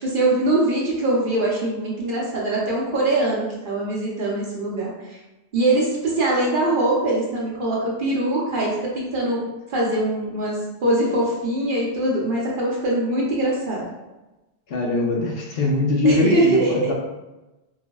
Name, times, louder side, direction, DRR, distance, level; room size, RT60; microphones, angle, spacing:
voice 1, 0.0-5.2 5.5-9.4 9.7-13.9 16.0-16.9, right 2 dB, 55° right, -4 dB, 0.8 m, -22 dB
voice 2, 14.7-16.9, left 2 dB, 65° left, -1 dB, 0.8 m, -21 dB
3.9 x 2.0 x 2.2 m, 1.0 s
omnidirectional pair, 1.1 m